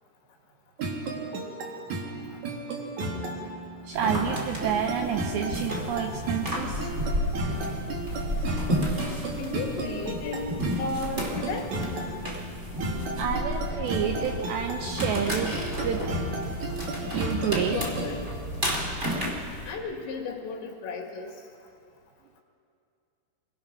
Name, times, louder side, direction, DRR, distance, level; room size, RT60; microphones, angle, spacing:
sound 1, 0.8-18.2, right 2 dB, 60° right, 2.0 m, -34 dB
voice 1, 3.8-6.9 13.2-15.6 15.8-16.0 17.0-17.8, right 8 dB, 85° right, 4 dB, 2.6 m, -29 dB
sound 2, 3.9-19.7, equal, 40° right, 0.9 m, -32 dB
voice 2, 9.3-10.5 10.8-11.7 17.7-18.3 19.7-21.3, left 4 dB, 70° left, -1 dB, 4.2 m, -34 dB
25.0 x 19.0 x 5.8 m, 2.5 s
omnidirectional pair, 5.8 m